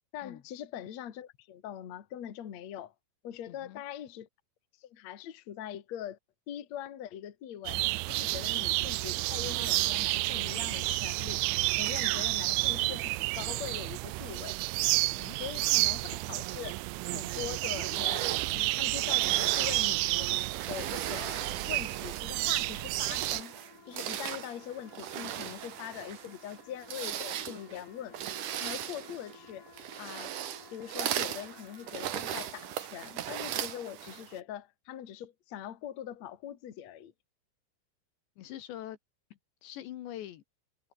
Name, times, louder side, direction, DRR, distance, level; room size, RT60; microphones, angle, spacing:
voice 1, 0.1-2.9 3.2-4.3 4.8-6.2 6.5-11.4 11.8-14.6 15.4-16.8 17.1-23.5 23.9-28.2 28.6-29.7 30.0-30.4 30.7-37.1, left 10 dB, 50° left, 2.5 m, -42 dB
voice 2, 3.5-3.8 15.0-15.4 38.4-39.0 39.6-40.4, left 12 dB, 70° left, 3.4 m, -43 dB
sound 1, 7.7-23.4, right 22 dB, 85° right, 2.8 m, -30 dB
sound 2, 17.8-22.4 22.9-34.4, right 11 dB, 55° right, 2.5 m, -38 dB
sound 3, 20.9-33.5, left 5 dB, 35° left, 3.3 m, -57 dB
omnidirectional pair, 5.6 m